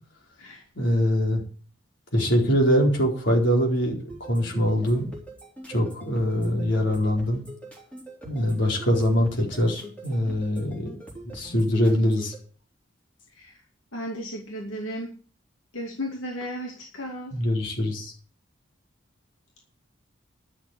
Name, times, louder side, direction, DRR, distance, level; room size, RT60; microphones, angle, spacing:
voice 1, 0.8-1.4 2.1-5.1 5.7-7.4 8.2-11.0 11.2-12.3 17.3-18.1, equal, 65° left, 1 dB, 4.3 m, -23 dB
sound 1, 4.1-12.4, right 1 dB, 5° left, 3.6 m, -43 dB
voice 2, 13.9-15.1 15.7-17.4, equal, 85° left, 0 dB, 2.6 m, -34 dB
11.5 x 6.9 x 8.4 m, 0.40 s
head